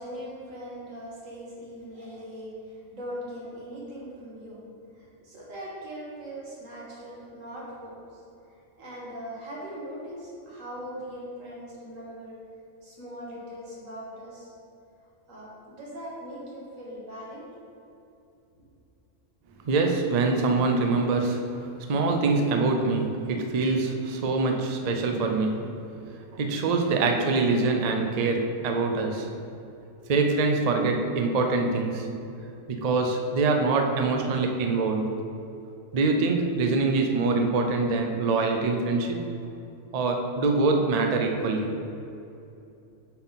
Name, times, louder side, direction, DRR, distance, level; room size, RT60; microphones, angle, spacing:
voice 1, 0.0-4.6 5.0-8.2 8.8-12.4 12.8-14.5 15.3-17.5, equal, 80° right, -5 dB, 1.9 m, -40 dB
voice 2, 19.6-25.7 26.1-29.3 30.1-32.1 32.7-35.2 35.9-39.3 39.9-41.7, right 3 dB, 50° right, 3 dB, 0.5 m, -24 dB
8.3 x 3.9 x 4.0 m, 2.7 s
omnidirectional pair, 1.3 m